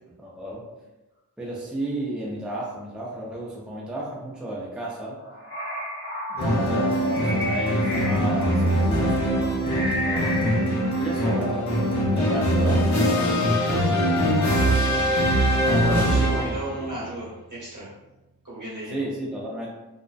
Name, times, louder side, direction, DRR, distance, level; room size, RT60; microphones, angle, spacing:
voice 1, 0.2-0.6 1.4-5.2 6.3-10.4 10.9-13.5 14.4-15.1 15.5-16.4 16.8-16.9 18.9-19.7, right 1 dB, 5° right, -4 dB, 0.5 m, -33 dB
sound 1, 5.1-8.8 9.6-11.4, left 1 dB, 35° left, 1.0 m, -33 dB
sound 2, 6.4-16.8, equal, 50° left, 0.6 m, -22 dB
voice 2, 15.8-17.9 18.4-18.9, right 1 dB, 60° right, -8 dB, 1.2 m, -34 dB
2.5 x 2.1 x 2.2 m, 1.0 s
wide cardioid pair, 70°, 35 cm